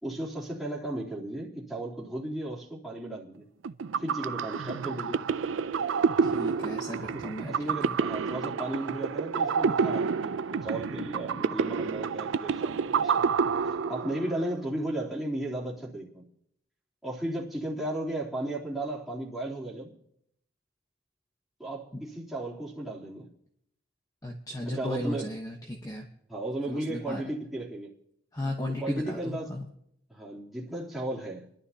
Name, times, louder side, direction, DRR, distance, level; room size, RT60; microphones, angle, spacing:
voice 1, 0.0-3.4 4.0-5.2 7.1-13.3 13.6-16.2 17.0-19.9 21.6-23.3 24.7-25.3 26.3-27.9 28.8-29.5 30.1-31.4, right 1 dB, ahead, -8 dB, 3.2 m, -35 dB
sound 1, 3.6-14.5, right 5 dB, 90° right, 0.5 m, -29 dB
voice 2, 6.2-7.5 7.8-8.0 21.9-22.0 24.2-26.0 26.7-27.2 28.3-29.6, left 1 dB, 20° left, 0 dB, 1.1 m, -35 dB
29.5 x 11.5 x 2.8 m, 0.74 s
head